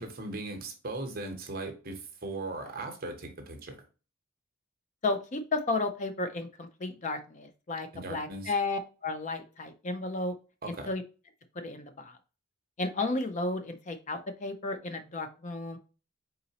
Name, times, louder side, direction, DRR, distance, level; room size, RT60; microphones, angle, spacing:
voice 1, 0.0-3.7 7.9-8.5 10.6-10.9, right 2 dB, 45° right, 4 dB, 0.9 m, -38 dB
voice 2, 5.0-10.3 10.9-11.0 11.5-12.2 12.8-15.8, left 3 dB, 35° left, 8 dB, 0.4 m, -33 dB
4.0 x 3.9 x 2.8 m, 0.34 s
head